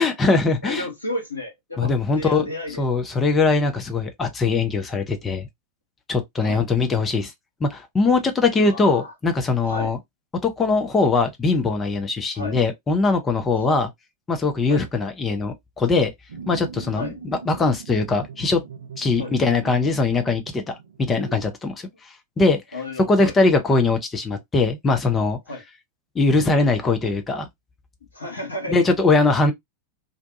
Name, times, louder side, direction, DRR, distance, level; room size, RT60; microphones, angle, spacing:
voice 1, 0.0-0.9 1.8-2.4 2.8-5.5 6.1-7.3 7.6-10.0 10.4-13.9 14.3-16.1 16.5-18.6 19.0-20.6 21.0-21.7 22.4-22.6 23.1-25.4 26.1-27.5 28.7-29.5, left 3 dB, 20° left, 0.6 m, -21 dB
voice 2, 0.6-2.9 6.4-6.6 8.6-9.1 9.7-9.9 12.3-12.6 13.6-13.8 14.7-14.9 16.9-17.2 19.2-19.3 22.7-23.3 25.5-25.6 28.1-28.8, left 1 dB, 80° left, 1.0 m, -32 dB
sound 1, 16.3-21.4, right 6 dB, 65° right, 0.6 m, -40 dB
2.6 x 2.2 x 2.5 m
figure-of-eight pair, 90°, 0 cm